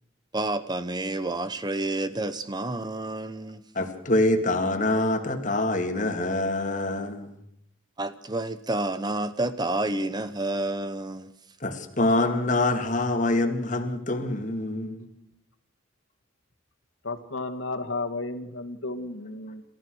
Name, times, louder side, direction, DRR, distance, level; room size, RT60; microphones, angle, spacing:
voice 1, 0.3-3.6 8.0-11.3, right 2 dB, 20° right, 12 dB, 0.9 m, -29 dB
voice 2, 3.7-7.3 11.6-15.1, left 2 dB, 40° left, 6 dB, 2.3 m, -25 dB
voice 3, 17.0-19.6, left 2 dB, 75° left, 7 dB, 1.9 m, -33 dB
29.5 x 14.0 x 6.4 m, 0.79 s
head